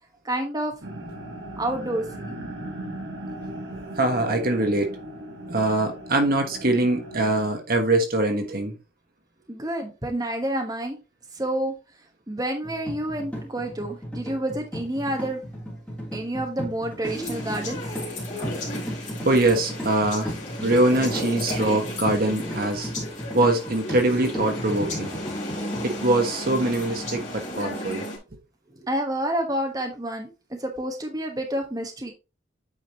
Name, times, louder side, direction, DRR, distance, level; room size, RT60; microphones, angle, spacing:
voice 1, 0.2-0.7 1.6-2.3 9.5-11.0 11.3-11.7 12.3-15.4 16.1-17.8 28.7-30.3 30.6-32.1, right 1 dB, 20° right, 1.2 m, -29 dB
sound 1, 0.8-7.5, right 1 dB, 70° right, 1.6 m, -37 dB
voice 2, 4.0-4.9 5.5-8.7 19.2-20.3 20.6-22.9 23.3-25.1 25.8-28.0, right 2 dB, 55° right, 1.3 m, -23 dB
sound 2, 12.6-27.3, equal, 5° left, 3.1 m, -35 dB
sound 3, 17.0-28.2, left 1 dB, 40° left, 3.0 m, -34 dB
8.7 x 5.0 x 2.9 m
head